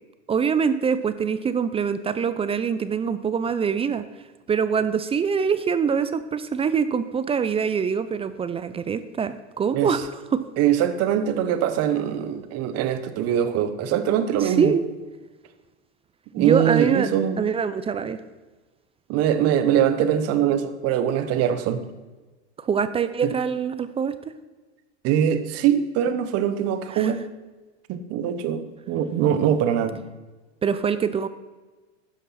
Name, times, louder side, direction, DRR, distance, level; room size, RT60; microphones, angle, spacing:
voice 1, 0.3-4.0 4.5-10.4 14.4-14.8 16.4-17.1 17.4-18.2 22.6-24.1 26.9-27.1 30.6-31.3, right 6 dB, 15° right, 13 dB, 0.5 m, -24 dB
voice 2, 10.6-14.7 16.3-17.4 19.1-21.8 25.0-27.2 27.9-30.0, right 9 dB, 45° right, 12 dB, 1.1 m, -22 dB
12.0 x 9.9 x 4.2 m, 1.2 s
hypercardioid pair, 100°, 34 cm